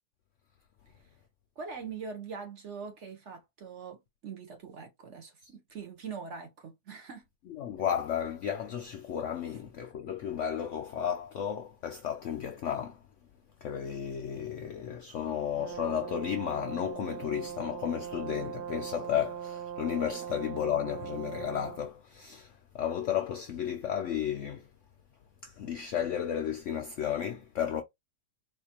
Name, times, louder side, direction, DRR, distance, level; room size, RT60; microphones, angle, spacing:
voice 1, 1.6-7.2 9.5-9.6 20.2-20.3, right 5 dB, 55° right, 1.0 m, -43 dB
voice 2, 7.6-13.0 13.6-22.5 22.7-24.6 25.4-27.8, left 9 dB, 75° left, 0.7 m, -33 dB
Brass instrument, 15.6-21.8, right 9 dB, 80° right, 1.2 m, -40 dB
4.2 x 2.5 x 2.8 m
omnidirectional pair, 1.8 m